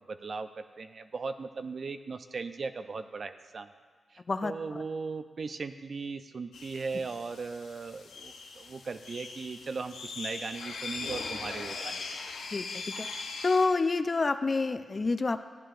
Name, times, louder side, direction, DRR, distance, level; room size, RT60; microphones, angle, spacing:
voice 1, 0.1-3.8 4.1-12.0, right 4 dB, 60° right, 9 dB, 0.5 m, -38 dB
voice 2, 4.3-4.8 12.5-13.1 13.4-15.4, left 3 dB, 45° left, 10 dB, 0.5 m, -28 dB
sound 1, 6.5-13.7, left 4 dB, 85° left, 0.7 m, -40 dB
14.0 x 8.8 x 2.5 m, 1.5 s
cardioid pair, 50°, 0 cm